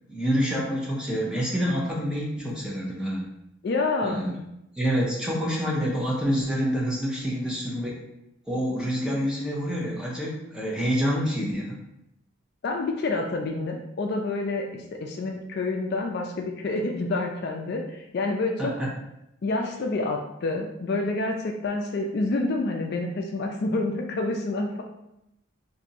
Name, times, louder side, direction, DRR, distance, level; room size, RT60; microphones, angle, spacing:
voice 1, 0.1-3.2 4.0-4.3 4.7-8.0 8.5-11.8 18.6-18.9, equal, 5° right, -4 dB, 0.6 m, -27 dB
voice 2, 3.6-4.2 12.6-18.7 19.4-24.8, left 2 dB, 50° left, 2 dB, 0.3 m, -28 dB
2.6 x 2.6 x 4.0 m, 0.85 s
head